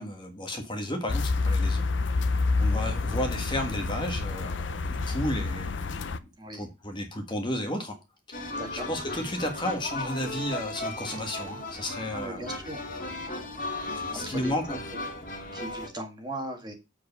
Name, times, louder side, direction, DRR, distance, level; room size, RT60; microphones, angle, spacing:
voice 1, 0.0-1.8 2.6-6.3 6.6-8.0 8.3-8.4 8.7-12.4 14.1-14.8, left 1 dB, 25° left, 1.5 m, -33 dB
sound 1, 1.1-6.2, left 3 dB, 65° left, 0.6 m, -28 dB
sound 2, 8.3-15.9, left 2 dB, 40° left, 2.1 m, -36 dB
voice 2, 8.5-8.9 12.1-12.8 14.1-14.8 15.5-16.7, right 1 dB, 20° right, 1.8 m, -38 dB
7.8 x 4.8 x 5.3 m
head